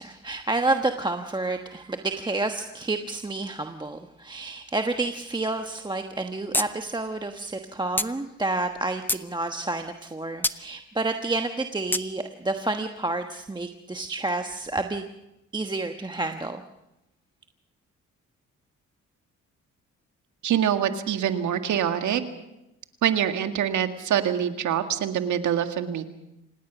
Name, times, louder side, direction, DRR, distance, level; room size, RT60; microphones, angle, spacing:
voice 1, 0.0-15.0 15.5-16.6, right 2 dB, 15° right, 5 dB, 1.2 m, -29 dB
sound 1, 6.5-6.7 7.0-7.1 8.0-8.1 8.7-9.3 10.4-10.6 11.9-12.0, left 1 dB, 5° left, 0.8 m, -25 dB
voice 2, 20.4-22.2 23.0-26.1, right 9 dB, 75° right, 7 dB, 2.0 m, -25 dB
26.5 x 19.5 x 6.1 m, 0.91 s
cardioid pair, 90°, 30 cm